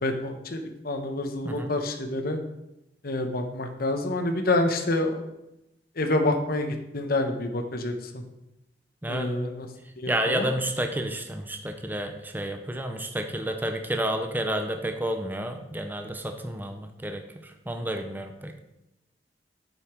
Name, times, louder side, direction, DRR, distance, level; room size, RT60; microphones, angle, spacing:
voice 1, 0.0-2.4 3.0-5.2 6.0-8.2 9.1-9.7 10.0-10.5, left 2 dB, 55° left, 6 dB, 1.0 m, -27 dB
voice 2, 10.1-17.2 17.7-18.5, right 1 dB, 10° right, 5 dB, 0.7 m, -30 dB
8.1 x 5.6 x 4.4 m, 0.90 s
head